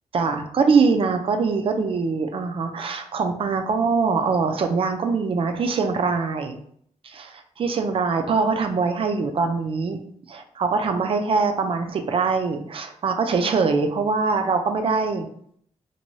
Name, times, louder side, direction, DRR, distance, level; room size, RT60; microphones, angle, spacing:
voice 1, 0.1-6.6 7.0-10.0 10.3-15.3, right 4 dB, 45° right, 6 dB, 0.4 m, -23 dB
2.6 x 2.2 x 3.0 m, 0.64 s
wide cardioid pair, 130°, 13 cm